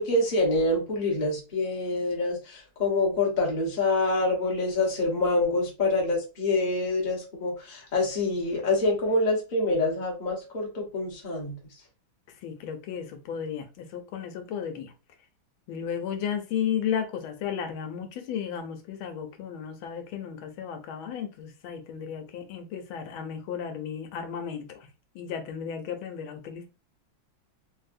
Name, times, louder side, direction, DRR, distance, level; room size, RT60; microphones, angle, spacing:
voice 1, 0.0-11.5, left 2 dB, 35° left, 0.8 m, -26 dB
voice 2, 12.4-14.9 15.7-24.9 25.1-26.6, left 8 dB, 85° left, 1.4 m, -34 dB
3.4 x 2.6 x 2.5 m
omnidirectional pair, 2.2 m